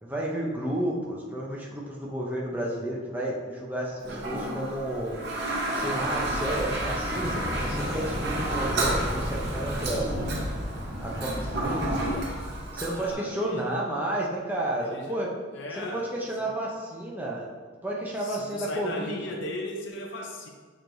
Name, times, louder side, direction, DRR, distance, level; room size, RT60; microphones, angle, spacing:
voice 1, 0.0-5.2 5.7-10.1 11.0-12.2 12.7-15.3 15.8-17.5 17.8-19.2, right 1 dB, 10° right, -4 dB, 0.6 m, -31 dB
Toilet flush, 4.0-13.1, right 1 dB, 55° right, 0.6 m, -31 dB
sound 1, 5.9-12.9, equal, 5° left, 1.1 m, -34 dB
voice 2, 11.8-12.4 12.9-13.8 14.8-15.3 15.5-16.1 16.4-16.6 18.2-20.5, left 1 dB, 60° left, 1 dB, 0.6 m, -37 dB
6.5 x 3.0 x 2.6 m, 1.5 s
head